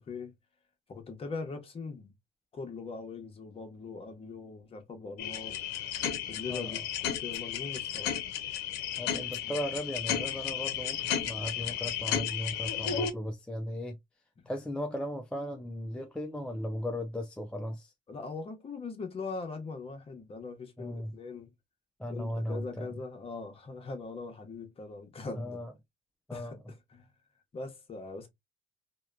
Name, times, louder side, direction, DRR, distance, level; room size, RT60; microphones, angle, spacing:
voice 1, 0.9-2.1 2.5-5.6 6.3-8.2 9.4-9.6 14.4-14.5 18.1-21.5 22.1-25.6 26.3-27.1 27.5-28.3, left 4 dB, 35° left, 0.8 m, -41 dB
sound 1, 5.2-13.1, left 9 dB, 85° left, 0.6 m, -33 dB
voice 2, 6.5-6.8 9.0-14.0 14.5-17.9 20.8-21.1 22.0-22.9 25.3-25.7 26.3-26.6, equal, 5° left, 0.3 m, -37 dB
2.8 x 2.2 x 2.2 m
cardioid pair, 110°, 17 cm